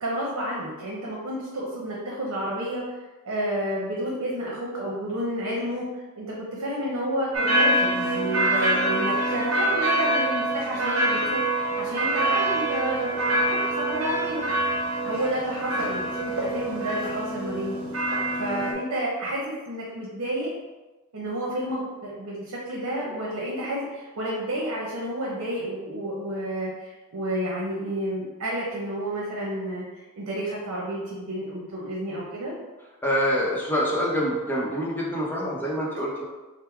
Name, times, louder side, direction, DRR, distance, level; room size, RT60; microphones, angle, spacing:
voice 1, 0.0-2.8 3.2-11.4 11.8-14.4 15.0-17.8 18.1-20.5 21.1-32.5, right 1 dB, 90° right, -4 dB, 0.8 m, -30 dB
sound 1, 7.3-18.7, right 1 dB, 70° right, 1.0 m, -25 dB
voice 2, 33.0-36.2, equal, 10° left, -5 dB, 0.7 m, -26 dB
3.7 x 2.1 x 4.4 m, 1.2 s
head